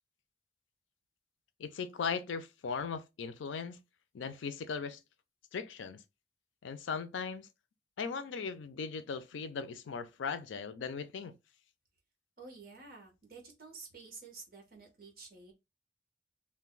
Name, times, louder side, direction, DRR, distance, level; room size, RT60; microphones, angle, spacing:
voice 1, 1.6-3.8 4.1-5.0 5.5-6.0 6.6-7.5 8.0-11.3, left 5 dB, 80° left, 0.4 m, -38 dB
voice 2, 12.4-15.5, right 4 dB, 50° right, 1.1 m, -51 dB
2.5 x 2.2 x 3.7 m
head